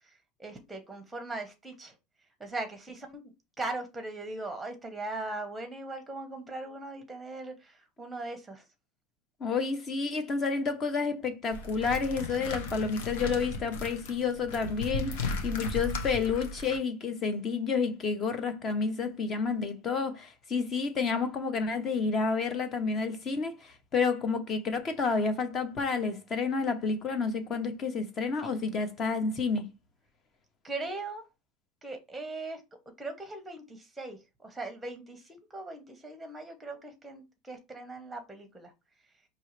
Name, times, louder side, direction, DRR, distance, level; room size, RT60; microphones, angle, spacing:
voice 1, 0.4-1.9 2.4-3.2 3.6-8.6 28.4-28.5 30.6-31.2 31.8-32.6 33.0-38.7, right 2 dB, 5° right, 1.0 m, -39 dB
voice 2, 9.4-29.7, left 5 dB, 25° left, 0.8 m, -30 dB
sound 1, 11.5-16.8, left 2 dB, 90° left, 1.0 m, -36 dB
5.3 x 2.9 x 3.2 m
supercardioid pair, 165°, 0 cm